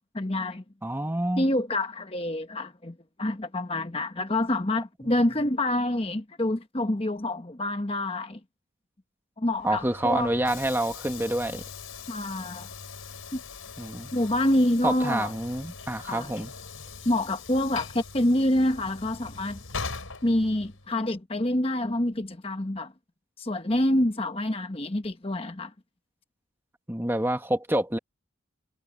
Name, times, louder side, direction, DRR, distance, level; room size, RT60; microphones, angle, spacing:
voice 1, 0.1-0.6 1.4-8.4 9.4-10.3 12.1-12.7 13.3-13.4 14.1-15.3 16.0-16.3 17.0-19.6 20.2-22.9 23.4-25.7, left 1 dB, 25° left, 1.2 m, -27 dB
voice 2, 0.8-1.5 5.0-5.1 9.6-11.6 13.8-14.1 14.8-16.5 26.9-28.0, right 1 dB, 10° right, 1.3 m, -27 dB
Train / Sliding door, 9.5-20.9, left 5 dB, 90° left, 5.2 m, -41 dB
head